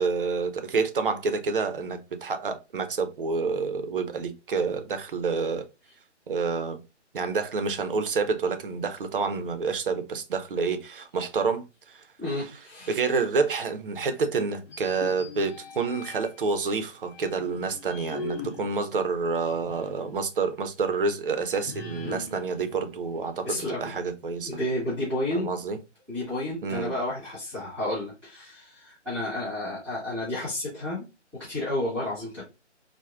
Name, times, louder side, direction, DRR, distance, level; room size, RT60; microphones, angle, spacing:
voice 1, 0.0-5.7 6.3-6.8 7.1-12.0 12.9-24.5 25.3-25.8 26.6-26.9, right 4 dB, 50° right, 0.5 m, -28 dB
voice 2, 12.2-13.0 23.4-23.9 24.4-25.5 26.1-31.0 31.3-32.4, left 1 dB, 5° left, 1.5 m, -31 dB
sound 1, 14.6-16.5 17.1-20.1 20.4-20.5 21.6-23.7, left 4 dB, 55° left, 0.9 m, -41 dB
4.5 x 2.1 x 2.3 m
figure-of-eight pair, 150°, 36 cm